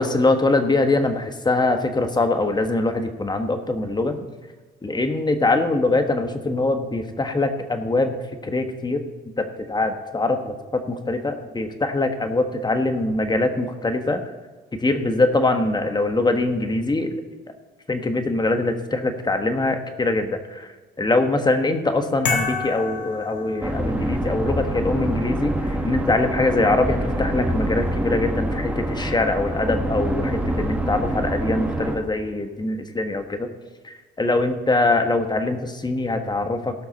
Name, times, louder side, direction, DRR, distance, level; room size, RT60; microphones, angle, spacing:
voice 1, 0.0-4.1 4.8-8.1 8.4-9.0 9.6-14.2 14.8-17.1 17.9-20.7 21.0-33.5 33.8-36.7, left 2 dB, 20° left, 7 dB, 1.4 m, -23 dB
sound 1, 22.2-24.2, left 4 dB, 65° left, 1.9 m, -28 dB
sound 2, 23.6-32.0, right 1 dB, 10° right, 1.9 m, -25 dB
17.5 x 5.9 x 5.3 m, 1.3 s
cardioid pair, 90°, 20 cm